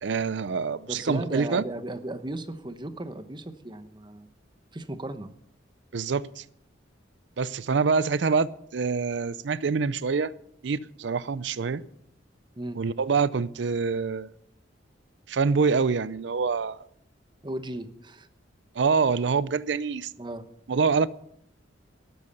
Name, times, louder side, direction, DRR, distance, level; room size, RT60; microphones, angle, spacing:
voice 1, 0.0-1.6 5.9-6.4 7.4-10.3 10.6-11.8 12.8-14.3 15.3-16.8 18.8-20.1 20.7-21.1, right 5 dB, 70° right, 0.5 m, -25 dB
voice 2, 0.9-4.3 4.7-5.3 12.6-12.8 17.4-18.3 20.2-20.4, right 1 dB, 25° right, 1.0 m, -36 dB
12.5 x 12.0 x 6.7 m
head